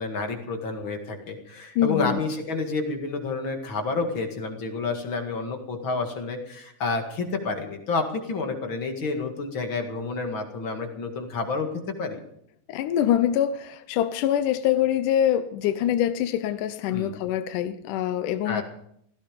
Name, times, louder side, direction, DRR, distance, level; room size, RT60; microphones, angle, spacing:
voice 1, 0.0-12.2 16.9-17.1 18.4-18.6, left 3 dB, 40° left, 4 dB, 2.5 m, -29 dB
voice 2, 1.8-2.2 12.7-18.6, left 11 dB, 80° left, 11 dB, 2.2 m, -24 dB
17.0 x 16.0 x 5.2 m, 0.70 s
omnidirectional pair, 3.8 m